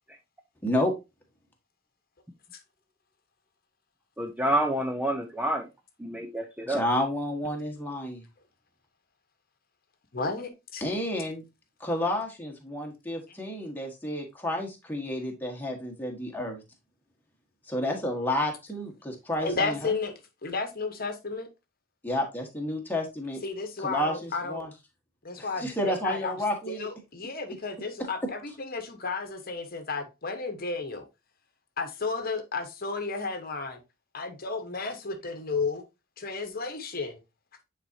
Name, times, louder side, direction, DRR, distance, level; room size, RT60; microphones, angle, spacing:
voice 1, 4.2-5.7 6.0-6.8, right 1 dB, 5° right, 0.5 m, -28 dB
voice 2, 6.7-8.2 10.8-11.4 11.8-16.6 17.7-19.9 22.0-23.4 23.8-24.7 25.4-26.9, left 1 dB, 10° left, 1.4 m, -30 dB
voice 3, 10.1-10.8 19.4-20.1 20.4-21.5 23.4-24.7 25.2-26.3 26.7-31.0 31.8-33.8 34.1-35.8 36.2-37.2, left 4 dB, 45° left, 1.1 m, -33 dB
9.3 x 4.2 x 2.7 m
head